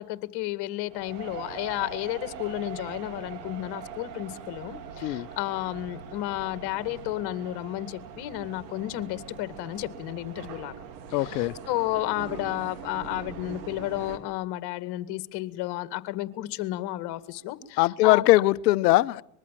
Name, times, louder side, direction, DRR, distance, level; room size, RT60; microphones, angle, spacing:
voice 1, 0.0-10.7 11.1-18.3, left 16 dB, 50° left, 2.2 m, -32 dB
sound 1, 0.9-14.2, right 7 dB, 70° right, 3.6 m, -42 dB
voice 2, 11.1-11.5 17.8-19.2, left 18 dB, 70° left, 0.9 m, -21 dB
24.5 x 22.0 x 7.5 m
hypercardioid pair, 110°, 50 cm